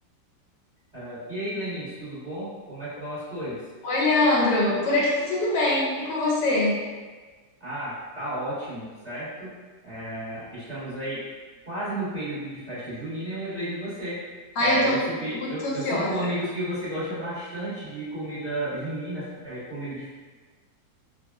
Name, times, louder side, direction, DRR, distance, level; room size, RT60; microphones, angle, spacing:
voice 1, 0.9-3.6 7.6-9.6 9.8-11.2 11.6-14.2 14.6-20.1, right 1 dB, 25° right, -14 dB, 1.1 m, -33 dB
voice 2, 3.8-6.8 14.6-15.0 15.3-16.2, left 2 dB, 75° left, -5 dB, 1.2 m, -23 dB
3.6 x 2.0 x 2.3 m, 1.4 s
omnidirectional pair, 1.9 m